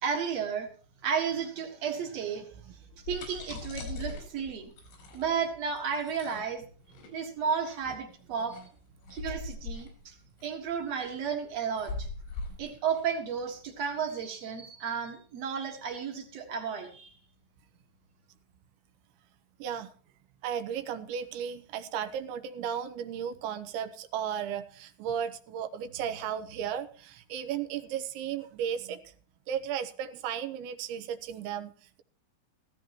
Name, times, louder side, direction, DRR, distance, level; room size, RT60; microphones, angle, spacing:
voice 1, 0.0-0.7 1.0-2.5 3.1-4.7 5.1-6.7 7.1-8.6 9.1-10.2 10.4-12.1 12.6-17.1, right 6 dB, 55° right, 3 dB, 1.9 m, -33 dB
sound 1, 2.8-14.2, left 3 dB, 80° left, 6.6 m, -42 dB
voice 2, 19.6-19.9 20.4-29.1 29.5-32.0, right 8 dB, 85° right, 8 dB, 3.2 m, -35 dB
15.5 x 15.5 x 3.0 m, 0.42 s
omnidirectional pair, 5.2 m